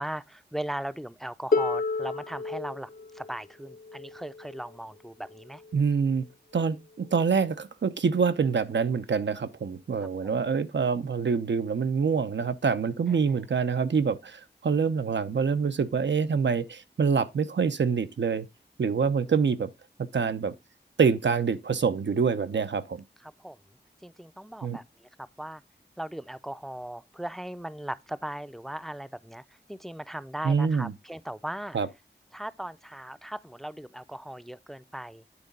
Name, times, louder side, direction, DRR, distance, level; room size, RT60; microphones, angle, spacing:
voice 1, 0.0-5.6 10.0-10.3 13.1-13.2 23.2-23.6 24.0-25.6 26.0-31.8 32.3-35.2, right 1 dB, ahead, 0.5 m, -38 dB
Harp, 1.5-7.3 8.4-8.5, left 3 dB, 50° left, 0.7 m, -33 dB
voice 2, 5.7-6.2 6.5-18.5 18.8-19.7 20.1-20.5 21.0-23.0 24.6-24.8 30.4-30.9 31.7-31.9, right 5 dB, 80° right, 0.7 m, -26 dB
9.7 x 3.9 x 5.2 m
wide cardioid pair, 60°, 18 cm